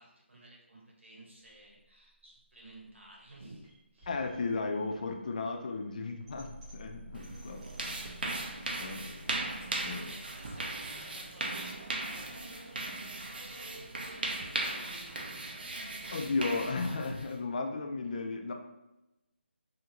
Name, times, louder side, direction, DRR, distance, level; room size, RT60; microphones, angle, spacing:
voice 1, 0.0-4.1 9.6-15.8, right 1 dB, 90° right, -2 dB, 1.2 m, -54 dB
sound 1, 1.4-13.4, right 1 dB, 20° right, 0.8 m, -55 dB
voice 2, 4.1-8.1 8.8-9.3 9.8-10.2 16.1-18.5, left 3 dB, 40° left, 4 dB, 0.3 m, -35 dB
sound 2, 7.1-17.4, right 2 dB, 50° right, 0.5 m, -38 dB
2.8 x 2.4 x 2.8 m, 0.93 s
figure-of-eight pair, 160°, 6 cm